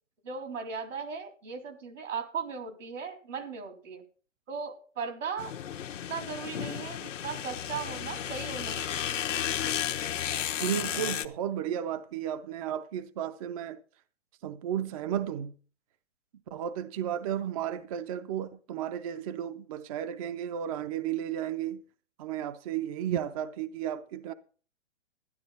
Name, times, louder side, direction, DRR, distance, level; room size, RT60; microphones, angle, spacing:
voice 1, 0.2-4.0 4.5-5.5 6.1-8.9, right 6 dB, 80° right, 3.9 m, -37 dB
sound 1, 5.4-11.3, left 9 dB, 80° left, 1.1 m, -33 dB
voice 2, 10.6-13.8 14.4-15.5 16.5-21.8 22.2-24.3, right 10 dB, 30° right, 0.5 m, -33 dB
12.0 x 11.0 x 4.1 m
hypercardioid pair, 145°, 37 cm